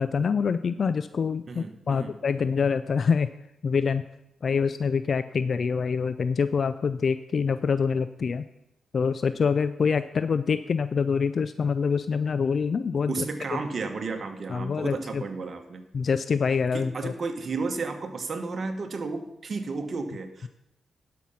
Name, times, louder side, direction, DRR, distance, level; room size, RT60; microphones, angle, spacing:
voice 1, 0.0-3.3 3.6-4.0 4.4-8.4 8.9-13.2 14.5-15.2 15.9-17.1, left 5 dB, 55° left, 13 dB, 0.4 m, -25 dB
voice 2, 1.5-2.1 13.0-15.8 16.7-20.5, right 4 dB, 50° right, 6 dB, 1.4 m, -33 dB
12.0 x 5.9 x 5.6 m, 0.86 s
cardioid pair, 70°, 0 cm